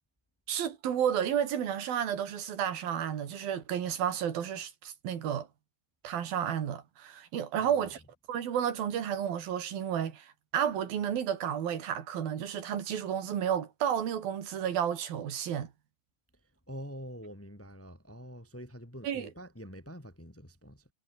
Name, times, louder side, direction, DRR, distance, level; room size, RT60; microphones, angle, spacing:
voice 1, 0.5-5.5 6.0-8.0 8.3-15.7 19.0-19.3, right 9 dB, 85° right, 4.3 m, -32 dB
voice 2, 7.6-7.9 16.7-20.9, equal, 5° left, 2.7 m, -46 dB
omnidirectional pair, 4.1 m